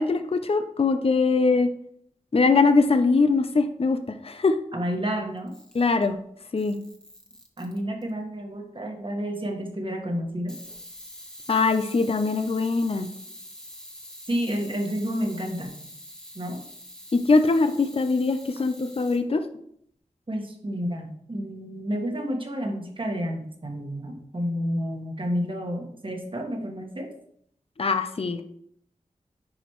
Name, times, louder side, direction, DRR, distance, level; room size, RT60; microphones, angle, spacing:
voice 1, 0.0-1.7 2.3-4.6 5.7-6.2 6.5-6.8 11.5-13.1 17.1-19.4 27.8-28.4, left 4 dB, 45° left, 8 dB, 0.6 m, -22 dB
voice 2, 4.7-5.5 7.6-10.6 14.3-15.8 16.3-16.6 20.3-27.1, equal, 40° right, 2 dB, 1.5 m, -30 dB
Camera, 5.4-6.1 6.6-8.1 10.5-19.2, equal, 5° left, 1.4 m, -45 dB
10.0 x 5.1 x 3.1 m, 0.68 s
wide cardioid pair, 65°, 13 cm